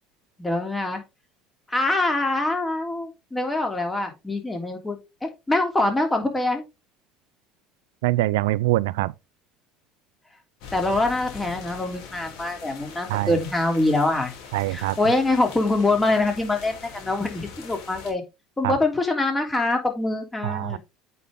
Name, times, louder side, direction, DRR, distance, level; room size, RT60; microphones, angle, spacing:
voice 1, 0.4-1.0 1.7-6.6 10.7-14.3 14.7-18.2 18.6-20.8, left 2 dB, 15° left, 3.0 m, -24 dB
voice 2, 8.0-9.1 13.1-13.4 14.5-15.0 18.6-18.8 20.4-20.8, right 17 dB, 85° right, 0.3 m, -23 dB
sound 1, 10.6-18.1, left 6 dB, 70° left, 3.6 m, -42 dB
8.4 x 5.3 x 3.7 m
supercardioid pair, 105°, 0 cm